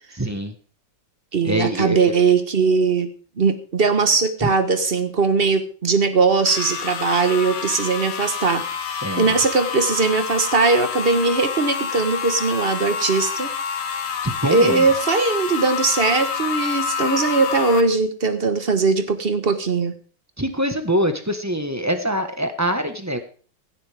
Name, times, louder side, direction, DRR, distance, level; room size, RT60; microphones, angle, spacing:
voice 1, 0.2-0.5 1.4-2.0 4.4-4.5 9.0-9.4 14.2-14.9 20.4-23.2, equal, 10° right, 7 dB, 1.0 m, -24 dB
voice 2, 1.3-3.1 3.4-13.5 14.5-19.9, right 4 dB, 35° right, 10 dB, 1.1 m, -20 dB
sound 1, 6.5-17.8, left 7 dB, 65° left, 1.8 m, -28 dB
16.5 x 12.0 x 3.5 m, 0.40 s
omnidirectional pair, 2.1 m